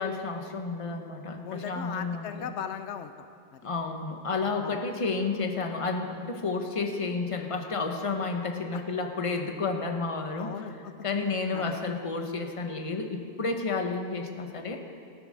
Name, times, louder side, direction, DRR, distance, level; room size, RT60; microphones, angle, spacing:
voice 1, 0.0-2.5 3.6-10.5 11.0-14.8, left 4 dB, 30° left, 4 dB, 1.1 m, -31 dB
voice 2, 1.4-3.3 3.5-3.6 4.6-4.8 8.7-8.8 10.4-11.8, left 8 dB, 80° left, 9 dB, 0.9 m, -39 dB
14.5 x 10.0 x 6.4 m, 2.4 s
omnidirectional pair, 1.1 m